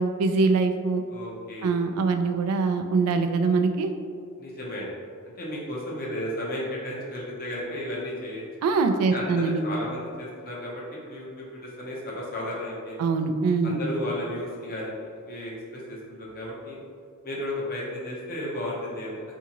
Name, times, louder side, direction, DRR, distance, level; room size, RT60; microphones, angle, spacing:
voice 1, 0.0-1.0 1.6-3.9 8.6-9.6 13.0-13.8, right 4 dB, 80° right, 8 dB, 0.3 m, -23 dB
voice 2, 1.1-1.7 4.4-4.9 5.4-8.5 9.1-13.1 13.6-16.8 17.2-19.2, left 1 dB, 45° left, -4 dB, 0.7 m, -34 dB
3.6 x 2.7 x 2.9 m, 2.2 s
head